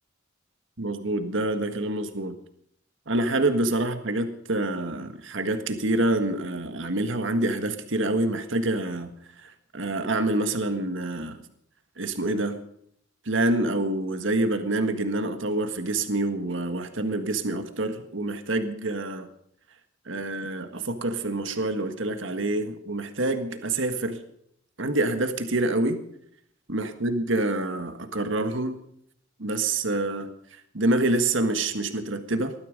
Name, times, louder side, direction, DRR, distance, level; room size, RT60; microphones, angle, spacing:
voice 1, 0.8-2.4 3.1-9.1 9.4-11.4 12.0-12.6 13.3-19.3 20.1-24.2 24.8-26.0 26.7-28.8 29.4-30.3 30.7-32.5, right 2 dB, 70° right, 8 dB, 1.7 m, -27 dB
20.0 x 13.5 x 5.2 m, 0.70 s
head